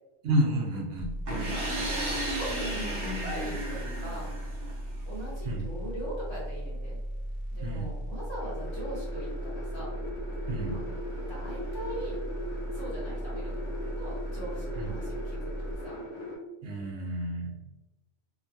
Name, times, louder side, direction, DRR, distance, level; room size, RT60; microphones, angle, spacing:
voice 1, 0.2-1.1 5.4-5.6 7.6-7.9 10.5-10.8 14.7-14.9 16.6-17.5, right 1 dB, 80° right, -1 dB, 1.0 m, -29 dB
sound 1, 1.0-15.7, right 1 dB, 25° right, 0.9 m, -37 dB
voice 2, 1.3-4.3 5.0-7.0 7.5-10.0 10.7-10.8 11.3-12.2 12.7-16.0, right 1 dB, 25° left, -8 dB, 1.1 m, -41 dB
sound 2, 1.3-5.0, right 1 dB, 55° right, 0.9 m, -34 dB
sound 3, 8.4-16.4, left 1 dB, 70° left, 1.2 m, -40 dB
2.9 x 2.2 x 2.6 m, 1.1 s
omnidirectional pair, 1.3 m